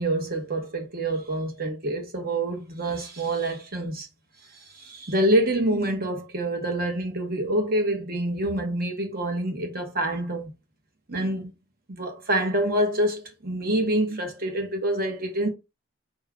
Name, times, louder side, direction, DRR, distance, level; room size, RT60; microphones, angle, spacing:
voice 1, 0.0-4.1 4.7-10.5 11.1-11.5 11.9-15.5, right 1 dB, 50° right, 1.3 m, -26 dB
4.9 x 3.0 x 3.6 m
head